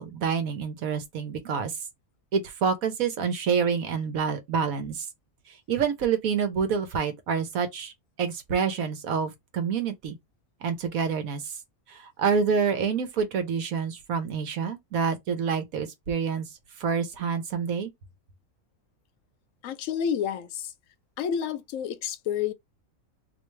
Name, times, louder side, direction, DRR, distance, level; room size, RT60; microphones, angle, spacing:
voice 1, 0.0-1.7 2.3-5.0 5.7-7.9 8.2-10.2 10.6-11.4 11.9-16.5 16.8-17.9, right 6 dB, 85° right, 1.4 m, -27 dB
voice 2, 19.6-20.5 21.2-22.5, left 8 dB, 70° left, 0.9 m, -29 dB
3.1 x 3.0 x 3.2 m
omnidirectional pair, 1.5 m